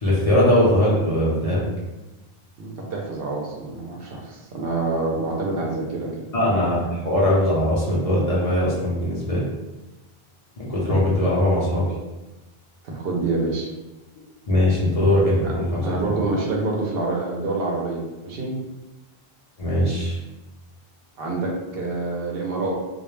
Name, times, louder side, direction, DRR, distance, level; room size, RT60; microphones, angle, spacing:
voice 1, 0.0-1.6 6.3-9.4 10.6-11.9 14.5-16.1 19.6-20.2, left 1 dB, 45° left, -7 dB, 0.6 m, -20 dB
voice 2, 2.6-6.1 12.8-13.7 15.4-15.5 15.8-18.5 21.2-22.7, right 3 dB, 70° right, -1 dB, 0.8 m, -27 dB
2.4 x 2.0 x 3.0 m, 1.1 s
omnidirectional pair, 1.0 m